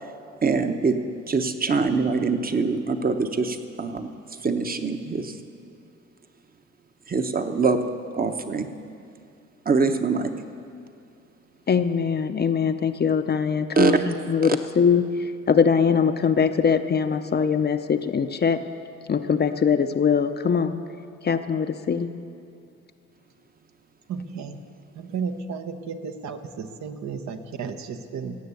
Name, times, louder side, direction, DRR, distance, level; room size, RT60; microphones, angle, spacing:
voice 1, 0.4-1.0 1.3-4.1 4.4-5.3 7.1-7.8 8.2-8.7 9.7-10.3 13.8-13.9, right 4 dB, 30° right, 8 dB, 0.9 m, -23 dB
voice 2, 11.7-18.6 19.1-20.8 21.2-22.1, left 6 dB, 35° left, 9 dB, 0.6 m, -22 dB
voice 3, 24.1-24.6 25.1-28.4, right 5 dB, 65° right, 7 dB, 1.0 m, -33 dB
17.0 x 6.7 x 8.2 m, 2.4 s
cardioid pair, 90°, 30 cm